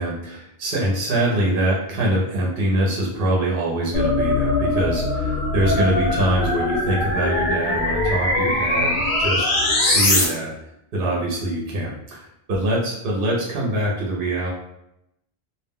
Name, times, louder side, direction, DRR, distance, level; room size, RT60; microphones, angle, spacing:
voice 1, 0.0-9.5 9.8-10.5 10.9-14.5, right 1 dB, 65° right, -3 dB, 0.8 m, -24 dB
sound 1, 3.9-10.2, left 2 dB, 85° left, 1.0 m, -21 dB
2.4 x 2.1 x 3.4 m, 0.81 s
omnidirectional pair, 1.1 m